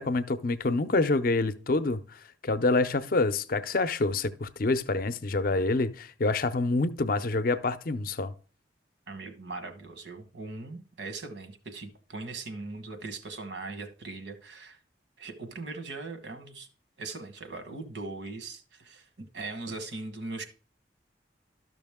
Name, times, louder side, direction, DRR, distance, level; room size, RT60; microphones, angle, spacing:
voice 1, 0.0-8.3, left 3 dB, 50° left, 0.5 m, -27 dB
voice 2, 9.1-14.8 15.2-16.7 17.0-20.4, right 3 dB, 70° right, 1.3 m, -40 dB
12.5 x 6.1 x 3.6 m
head